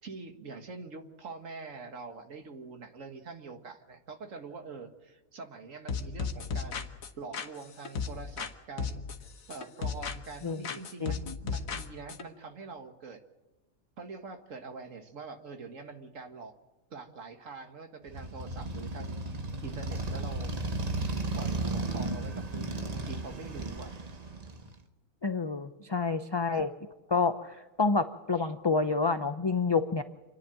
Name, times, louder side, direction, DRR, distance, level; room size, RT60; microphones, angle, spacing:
voice 1, 0.0-6.9 7.2-9.0 9.5-13.2 14.0-16.5 16.9-19.2 19.6-20.5 21.1-23.9 25.8-25.9 28.3-28.5, right 4 dB, 70° right, 5 dB, 2.0 m, -44 dB
sound 1, 5.9-8.5 8.8-10.4 10.6-12.3, left 5 dB, 85° left, 1.6 m, -35 dB
voice 2, 11.0-11.3 25.2-26.7 27.1-30.0, left 4 dB, 35° left, 9 dB, 0.4 m, -28 dB
Motorcycle, 18.1-24.8, right 2 dB, 30° right, 1.1 m, -34 dB
27.5 x 10.5 x 9.0 m, 1.1 s
omnidirectional pair, 1.4 m